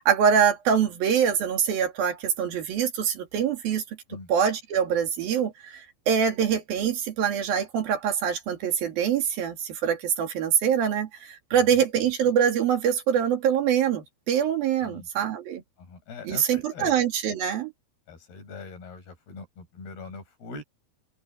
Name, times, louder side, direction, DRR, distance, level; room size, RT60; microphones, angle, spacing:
voice 1, 0.0-3.8 4.3-15.6 16.2-17.7, right 8 dB, 70° right, 4.4 m, -24 dB
voice 2, 11.5-11.8 14.8-15.1 15.8-17.0 18.1-20.6, left 4 dB, 80° left, 6.9 m, -42 dB
open air
omnidirectional pair, 4.4 m